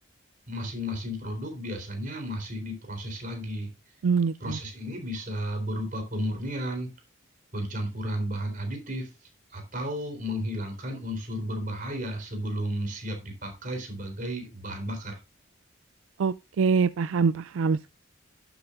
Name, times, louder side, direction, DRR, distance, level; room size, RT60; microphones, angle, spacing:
voice 1, 0.5-3.7 4.4-6.9 7.5-9.1 9.5-15.2, equal, 40° right, 3.8 m, -33 dB
voice 2, 4.0-4.3 16.2-17.9, right 5 dB, 75° right, 0.4 m, -24 dB
11.5 x 8.0 x 2.5 m
head